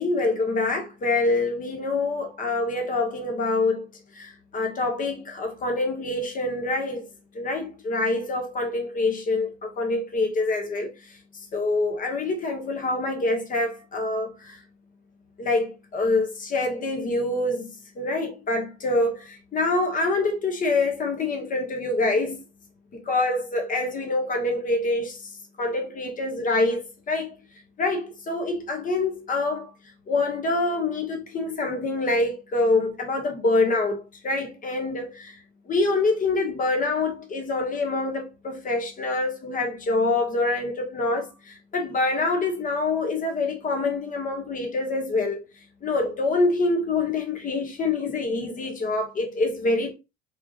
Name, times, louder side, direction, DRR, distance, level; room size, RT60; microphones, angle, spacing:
voice 1, 0.0-3.9 4.2-7.0 7.3-10.9 11.5-14.6 15.4-22.4 22.9-25.3 25.6-26.8 27.1-27.3 27.8-29.7 30.1-35.4 35.7-45.4 45.8-49.9, left 2 dB, 25° left, 1.4 m, -26 dB
4.5 x 3.7 x 2.6 m
figure-of-eight pair, 65°, 30 cm